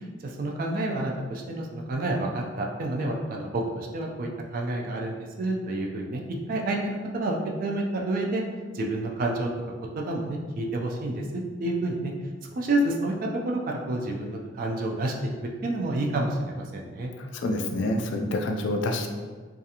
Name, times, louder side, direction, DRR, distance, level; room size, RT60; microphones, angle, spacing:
voice 1, 0.0-6.2 6.5-8.4 8.7-9.5 9.9-12.1 12.6-15.3 15.6-17.1, right 2 dB, 45° right, 0 dB, 0.3 m, -29 dB
voice 2, 17.2-19.1, left 1 dB, 70° left, 4 dB, 0.3 m, -27 dB
2.4 x 2.3 x 2.8 m, 1.5 s
head